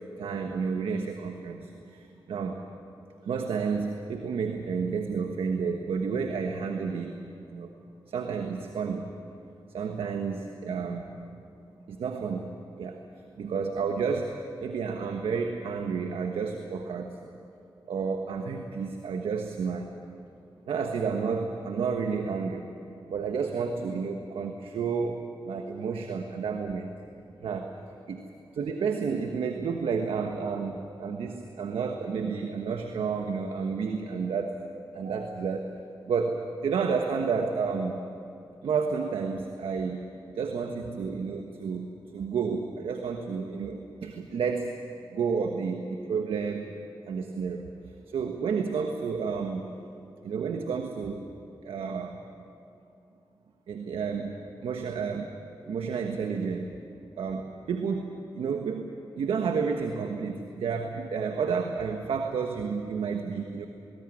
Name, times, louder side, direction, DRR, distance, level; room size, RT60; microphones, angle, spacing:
voice 1, 0.2-2.6 3.2-7.2 7.5-7.7 8.1-9.1 9.7-11.1 11.9-13.0 13.4-14.3 14.6-17.1 17.9-19.9 20.7-22.7 23.1-26.9 27.4-27.7 28.1-28.2 28.5-34.5 34.9-35.7 36.1-38.0 38.6-40.0 40.3-41.9 42.1-44.7 45.1-46.7 47.1-47.7 48.1-49.6 50.2-51.2 51.6-52.2 53.7-54.4 54.6-55.3 55.7-56.7 57.2-58.9 59.2-63.7, right 5 dB, 85° right, 4 dB, 1.3 m, -31 dB
20.0 x 19.0 x 9.8 m, 2.7 s
supercardioid pair, 45°, 9 cm